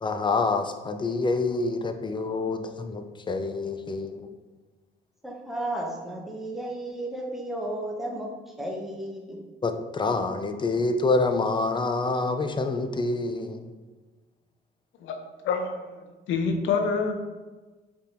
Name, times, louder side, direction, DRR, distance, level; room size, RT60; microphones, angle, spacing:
voice 1, 0.0-4.3 9.6-13.7, left 3 dB, 25° left, 7 dB, 0.4 m, -27 dB
voice 2, 5.2-9.4, right 1 dB, ahead, -1 dB, 0.8 m, -33 dB
voice 3, 15.5-15.9 16.3-17.1, left 5 dB, 75° left, 5 dB, 0.6 m, -26 dB
4.4 x 3.5 x 2.5 m, 1.3 s
cardioid pair, 90°, 20 cm